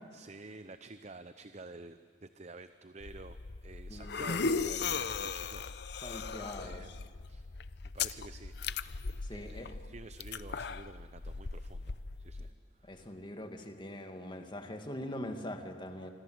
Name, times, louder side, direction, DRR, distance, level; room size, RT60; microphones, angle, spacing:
voice 1, 0.1-6.2 6.6-7.0 7.3-7.5 7.9-9.0 9.3-13.2, right 2 dB, 35° right, 11 dB, 0.7 m, -50 dB
sound 1, 3.0-12.5, left 5 dB, 60° left, 0.7 m, -38 dB
voice 2, 3.9-4.5 6.0-6.8 9.2-9.7 12.8-16.1, left 1 dB, 25° left, 5 dB, 2.1 m, -43 dB
26.5 x 25.5 x 7.9 m, 2.1 s
head